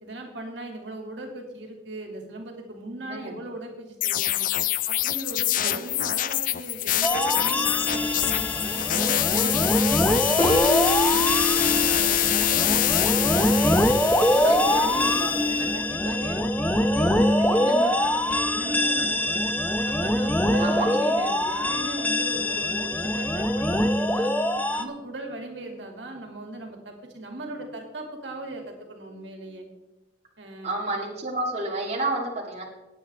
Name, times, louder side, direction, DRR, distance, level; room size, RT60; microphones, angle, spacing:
voice 1, 0.0-4.5 4.9-8.4 8.8-13.6 14.0-16.5 16.9-19.4 19.9-24.3 24.7-29.7 30.4-30.8, right 1 dB, 80° right, 2 dB, 2.3 m, -38 dB
sound 1, 4.0-15.4, left 14 dB, 50° left, 0.3 m, -26 dB
sound 2, 7.0-24.8, left 1 dB, 10° left, 0.7 m, -23 dB
Piano, 10.4-16.2, left 2 dB, 25° left, 2.9 m, -30 dB
voice 2, 14.4-15.3 17.6-17.9 20.6-20.9 30.6-32.6, right 2 dB, 40° right, -2 dB, 2.0 m, -30 dB
18.0 x 8.5 x 3.4 m, 1.0 s
head